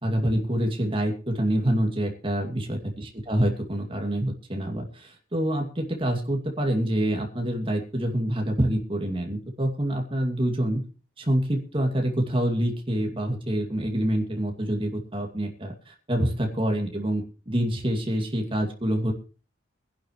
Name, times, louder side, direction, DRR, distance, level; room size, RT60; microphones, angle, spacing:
voice 1, 0.0-10.8 11.2-19.1, right 1 dB, 30° right, 2 dB, 2.5 m, -26 dB
22.5 x 11.0 x 3.2 m, 0.35 s
head